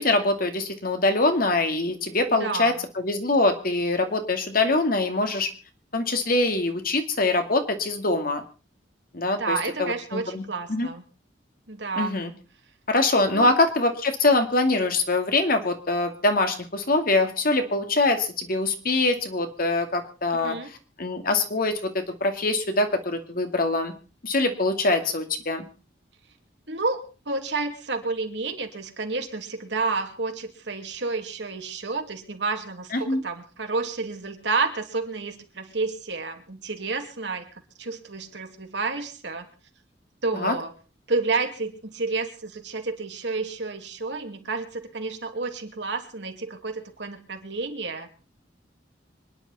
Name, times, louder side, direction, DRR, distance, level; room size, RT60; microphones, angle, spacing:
voice 1, 0.0-5.5 5.9-8.4 9.1-10.4 10.7-10.9 12.0-12.3 12.9-20.6 21.0-21.8 22.2-23.9 24.2-25.7 32.9-33.2 40.3-40.5, left 2 dB, 55° left, 6 dB, 2.3 m, -23 dB
voice 2, 2.3-2.8 9.4-11.0 11.7-12.1 13.3-13.5 20.4-20.7 26.7-37.5 37.8-39.5 40.2-40.7 41.1-48.1, right 3 dB, 70° right, 4 dB, 2.7 m, -30 dB
26.0 x 10.5 x 4.2 m, 0.36 s
head